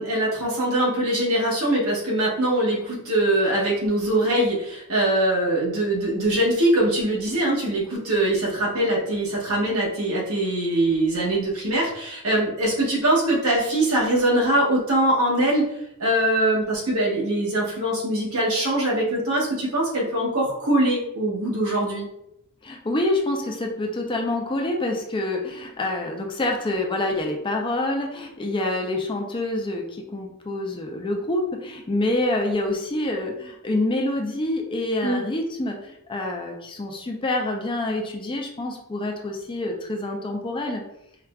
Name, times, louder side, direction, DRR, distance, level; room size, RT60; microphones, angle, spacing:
voice 1, 0.0-15.7 16.0-22.1 35.0-35.2, right 1 dB, 75° right, -4 dB, 1.2 m, -22 dB
voice 2, 22.6-40.8, left 2 dB, 20° left, 1 dB, 0.4 m, -27 dB
4.7 x 2.4 x 2.2 m, 0.78 s
head